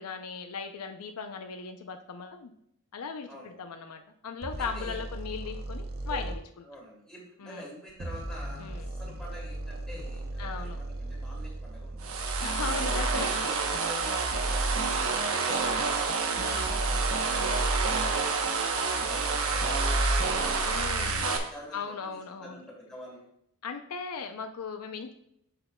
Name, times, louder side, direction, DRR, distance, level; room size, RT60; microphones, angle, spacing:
voice 1, 0.0-2.5 2.9-6.4 7.4-7.7 8.6-8.9 10.4-10.8 12.4-13.3 14.6-14.7 16.3-16.9 20.7-21.3 21.7-22.6 23.6-25.1, left 5 dB, 85° left, 7 dB, 0.6 m, -38 dB
sound 1, 4.4-6.4 7.9-12.2, right 1 dB, 45° right, 0.6 m, -37 dB
voice 2, 4.6-5.0 6.1-6.3 6.6-12.2 12.8-15.8 16.2-18.4 18.8-23.3, equal, 5° left, -5 dB, 2.7 m, -47 dB
sound 2, 12.0-21.4, right 3 dB, 65° right, 1.0 m, -27 dB
7.9 x 7.7 x 2.3 m, 0.73 s
head